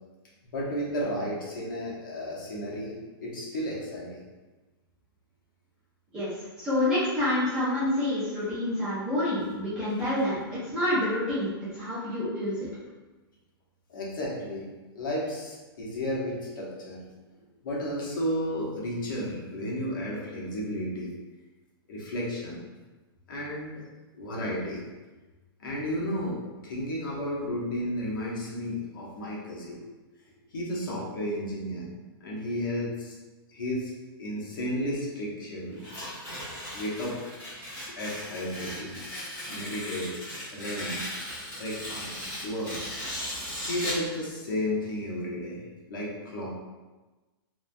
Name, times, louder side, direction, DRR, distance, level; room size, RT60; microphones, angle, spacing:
voice 1, 0.5-4.2 13.9-14.7 14.9-17.0 17.3-21.1 21.9-22.6 23.3-23.8 24.1-24.8 25.6-29.8 30.3-31.9 32.2-33.1 33.5-33.9 34.2-35.8 36.4-36.5 36.7-37.3 37.9-40.1 40.5-41.0 41.6-42.8 43.6-45.6 45.9-46.5, equal, 55° left, -4 dB, 0.8 m, -33 dB
voice 2, 6.6-11.5 11.7-12.6, left 1 dB, 5° right, -12 dB, 0.4 m, -27 dB
Tearing, 35.8-44.1, left 1 dB, 10° left, 1.0 m, -37 dB
3.1 x 2.1 x 2.5 m, 1.2 s
hypercardioid pair, 180°, 13 cm